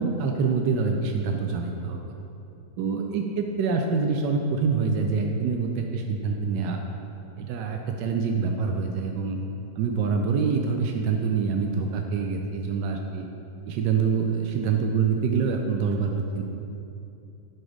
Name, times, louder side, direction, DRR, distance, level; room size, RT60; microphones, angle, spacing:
voice 1, 0.0-2.0 2.8-6.8 7.4-9.4 9.8-13.3 13.7-16.4, right 5 dB, 90° right, 3 dB, 1.2 m, -26 dB
11.0 x 4.3 x 4.9 m, 2.8 s
omnidirectional pair, 1.8 m